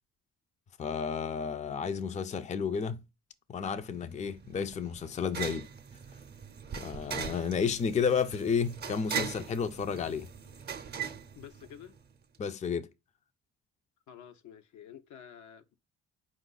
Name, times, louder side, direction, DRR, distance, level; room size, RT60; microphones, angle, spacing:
voice 1, 0.8-3.0 3.5-5.7 6.7-10.3 12.4-12.9, left 6 dB, 25° left, 0.4 m, -32 dB
sound 1, 3.8-12.1, right 7 dB, 35° right, 0.6 m, -40 dB
voice 2, 11.3-12.0 14.1-15.8, left 9 dB, 75° left, 0.7 m, -50 dB
4.6 x 2.5 x 3.9 m
cardioid pair, 90°, 30 cm